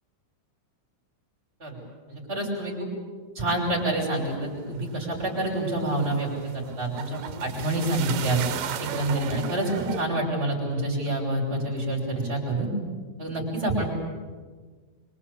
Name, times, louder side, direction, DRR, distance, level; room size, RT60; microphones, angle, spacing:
voice 1, 2.1-2.9 3.3-6.3 6.5-8.4 8.8-12.7 13.2-13.9, right 1 dB, 15° right, -4 dB, 6.3 m, -27 dB
sound 1, 3.5-10.0, right 9 dB, 70° right, 2.7 m, -37 dB
25.5 x 24.5 x 8.6 m, 1.5 s
omnidirectional pair, 4.3 m